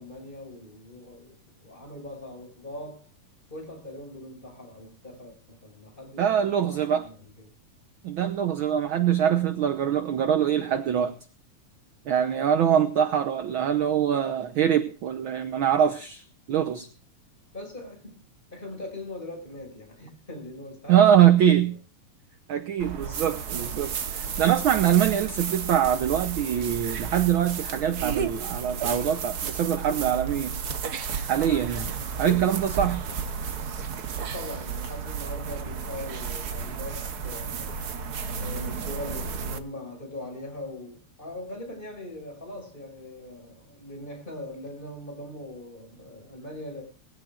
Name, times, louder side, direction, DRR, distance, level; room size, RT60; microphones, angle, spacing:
voice 1, 0.0-3.1 3.5-7.5 17.5-18.2 18.5-21.8 32.2-32.6 33.1-33.2 34.2-37.8 38.4-46.8, left 1 dB, 15° left, 6.3 m, -41 dB
voice 2, 6.2-7.1 8.0-11.2 12.1-16.9 20.9-21.7 22.5-30.6 31.3-31.9 32.2-33.0, right 9 dB, 65° right, 1.3 m, -23 dB
sound 1, 22.8-39.6, right 6 dB, 85° right, 0.8 m, -33 dB
21.0 x 15.5 x 2.4 m
omnidirectional pair, 3.3 m